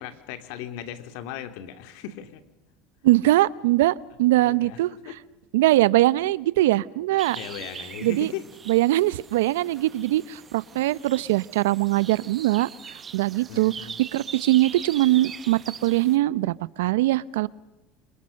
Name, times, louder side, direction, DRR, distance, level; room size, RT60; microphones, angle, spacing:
voice 1, 0.0-2.4 4.4-5.2 7.3-8.4 13.5-14.0, left 10 dB, 75° left, 9 dB, 2.7 m, -37 dB
voice 2, 3.0-4.9 5.5-7.4 8.0-8.3 8.7-12.7 13.1-13.7 14.1-17.5, right 17 dB, 90° right, 19 dB, 0.8 m, -21 dB
sound 1, 7.2-16.2, right 6 dB, 30° right, 1.4 m, -41 dB
26.5 x 26.5 x 6.5 m, 1.0 s
supercardioid pair, 110°, 0 cm